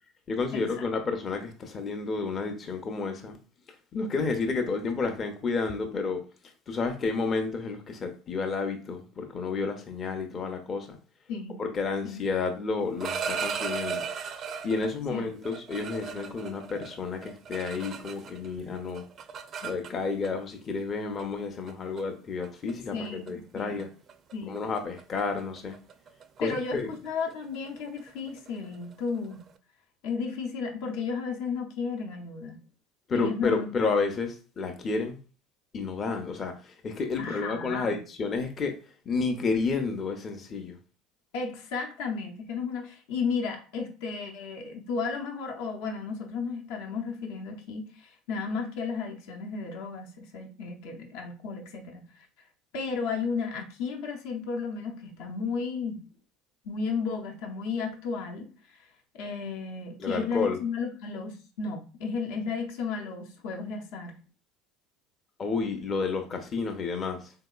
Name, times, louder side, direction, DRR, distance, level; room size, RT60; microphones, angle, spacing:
voice 1, 0.3-3.4 3.9-6.2 6.7-11.0 11.6-14.0 14.6-19.0 19.6-23.9 24.5-25.8 26.4-26.9 33.1-35.2 35.7-38.7 39.1-40.8 60.0-60.6 65.4-67.3, left 4 dB, 40° left, 0.6 m, -31 dB
voice 2, 11.3-11.6 12.0-12.2 15.1-15.3 22.9-23.8 24.3-24.6 26.4-29.4 30.0-32.6 33.1-33.7 37.2-38.0 41.3-52.3 52.7-56.0 56.6-58.9 59.1-64.1, left 5 dB, 70° left, 0.7 m, -34 dB
sound 1, 12.8-14.9 15.4-18.5 18.8-20.3 21.2-21.3 21.7-22.0 22.4-22.7 23.0-23.3 23.6-23.8 24.1-29.5, right 6 dB, 45° right, 0.4 m, -37 dB
3.7 x 2.7 x 2.3 m
hypercardioid pair, 75°, 0 cm